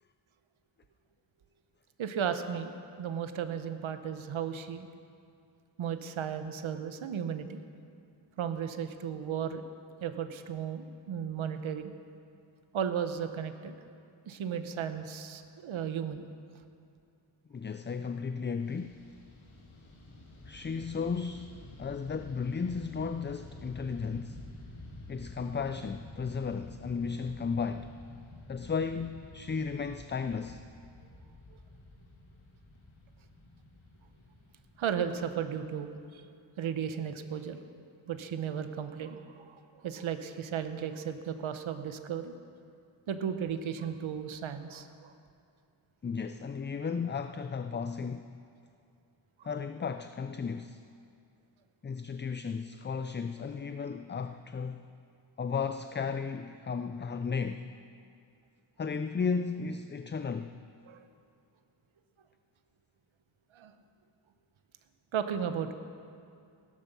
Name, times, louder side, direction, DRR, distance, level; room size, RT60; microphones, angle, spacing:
voice 1, 2.0-4.9 5.8-7.6 8.4-9.6 10.0-11.9 12.7-13.7 14.3-16.3 34.8-36.2 36.6-37.6 38.1-42.3 43.1-45.1 60.9-61.0 63.5-63.7 65.1-65.7, right 8 dB, 90° right, 9 dB, 0.9 m, -35 dB
voice 2, 17.5-19.1 20.5-24.4 25.1-27.9 28.5-30.6 46.0-48.3 49.4-50.8 51.8-54.8 55.4-57.7 58.8-60.6, left 5 dB, 25° left, 10 dB, 0.4 m, -34 dB
Fixed-wing aircraft airplane, 18.6-36.1, left 1 dB, 90° left, 2.5 m, -50 dB
16.0 x 11.5 x 6.8 m, 2.4 s
wide cardioid pair, 100°, 46 cm